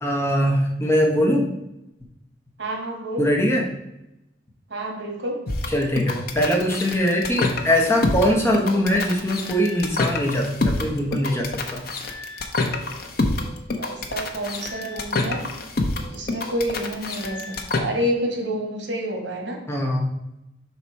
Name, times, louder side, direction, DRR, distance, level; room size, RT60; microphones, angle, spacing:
voice 1, 0.0-1.5 3.2-3.7 5.7-11.8 19.7-20.1, equal, 15° left, -1 dB, 0.9 m, -22 dB
voice 2, 2.6-3.3 4.7-5.5 13.8-15.5 16.1-19.6, equal, 80° right, 2 dB, 1.4 m, -28 dB
sound 1, 5.5-17.8, left 2 dB, 55° left, 0.8 m, -27 dB
5.8 x 4.3 x 4.5 m, 0.89 s
head